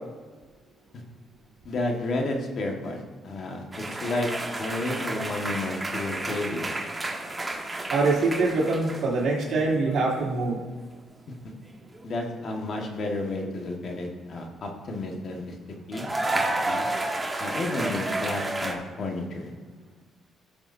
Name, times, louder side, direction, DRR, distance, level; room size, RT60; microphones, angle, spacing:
voice 1, 1.6-4.3 4.6-6.8 12.0-15.6 15.9-16.9 17.4-19.5, left 2 dB, 55° left, 1 dB, 1.6 m, -31 dB
sound 1, 3.7-9.2 9.5-9.9 11.8-12.0 15.9-18.7, right 2 dB, 20° right, 1.3 m, -31 dB
voice 2, 7.9-10.6, right 3 dB, 70° right, -3 dB, 2.8 m, -24 dB
15.0 x 7.0 x 2.7 m, 1.4 s
cardioid pair, 90°, 0 cm